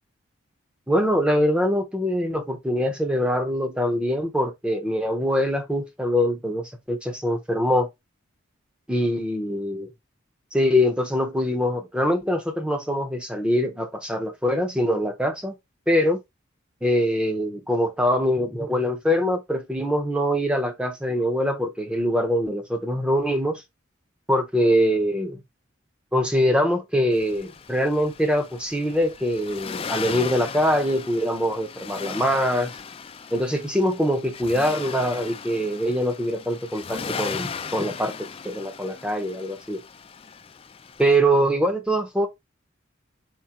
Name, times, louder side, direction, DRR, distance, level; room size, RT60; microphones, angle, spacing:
voice 1, 0.9-7.9 8.9-9.9 10.5-15.5 15.9-16.2 16.8-23.6 24.3-25.4 26.1-32.7 33.3-39.8 41.0-42.3, equal, 5° right, 0.7 m, -23 dB
Accelerating revving vroom, 27.1-41.1, left 5 dB, 30° left, 0.3 m, -37 dB
5.0 x 3.7 x 2.9 m
head